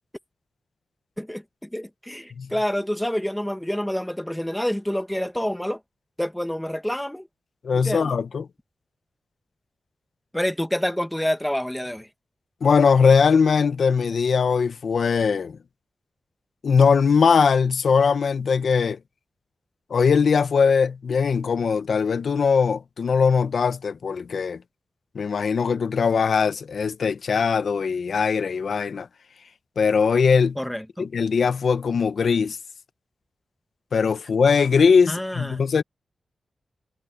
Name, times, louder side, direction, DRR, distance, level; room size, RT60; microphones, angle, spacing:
voice 1, 1.2-5.8 6.2-7.3 7.7-8.1 10.3-12.1 30.6-31.1 35.1-35.6, equal, 5° left, 1.5 m, -28 dB
voice 2, 7.6-8.5 12.6-15.6 16.6-19.0 19.9-24.6 25.1-29.1 29.8-30.6 31.0-32.6 33.9-35.8, left 5 dB, 65° left, 1.1 m, -20 dB
wide cardioid pair, 150°, 0 cm